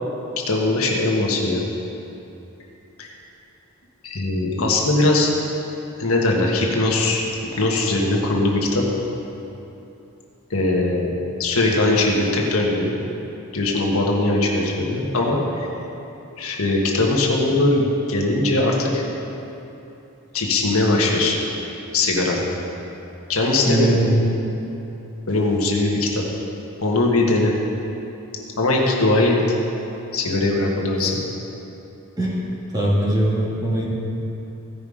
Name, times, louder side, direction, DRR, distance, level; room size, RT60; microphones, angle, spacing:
voice 1, 0.5-1.6 3.0-3.1 4.0-5.3 6.0-7.2 7.6-8.9 10.5-11.1 11.4-12.9 13.5-15.7 16.4-19.0 20.3-21.3 21.9-22.4 23.3-24.0 25.3-26.2 26.8-27.5 28.6-29.4 30.1-31.2, left 2 dB, 75° left, -1 dB, 1.4 m, -20 dB
voice 2, 23.7-24.2 31.0-31.1 32.2-32.4 32.7-33.9, right 1 dB, 15° right, -6 dB, 1.8 m, -20 dB
15.5 x 5.4 x 5.0 m, 2.9 s
head